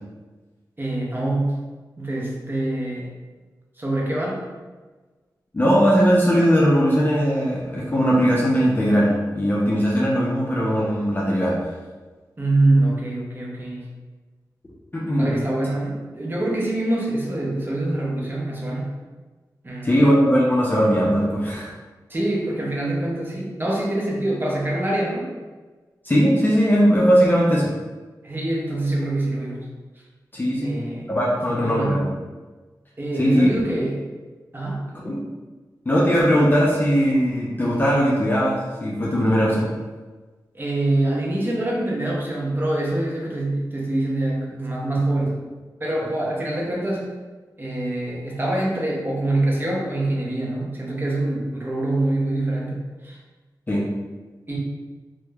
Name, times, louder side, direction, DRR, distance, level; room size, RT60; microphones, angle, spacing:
voice 1, 0.8-1.7 2.0-3.1 3.8-4.5 12.4-13.9 15.2-18.9 19.6-20.0 22.1-25.3 28.2-29.7 30.6-32.2 33.0-34.0 34.5-34.9 40.5-45.4 45.8-47.1 47.6-53.2 54.5-54.6, right 1 dB, 30° right, -3 dB, 0.6 m, -25 dB
voice 2, 5.5-11.6 14.9-15.4 19.8-21.7 26.0-27.7 30.3-30.8 31.1-32.1 33.2-33.5 35.0-35.2 35.9-39.7 53.7-53.8, equal, 25° left, -5 dB, 0.5 m, -19 dB
2.9 x 2.0 x 2.2 m, 1.3 s
cardioid pair, 65°, 7 cm